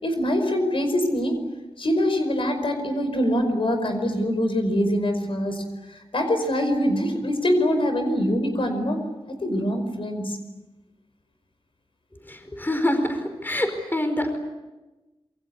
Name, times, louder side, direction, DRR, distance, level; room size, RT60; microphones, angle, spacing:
voice 1, 0.0-1.4 1.8-9.0 9.4-10.4, equal, 60° left, 6 dB, 5.1 m, -24 dB
voice 2, 12.3-14.4, left 1 dB, 20° left, 7 dB, 5.0 m, -26 dB
27.5 x 24.0 x 8.5 m, 1.1 s
wide cardioid pair, 85°, 10 cm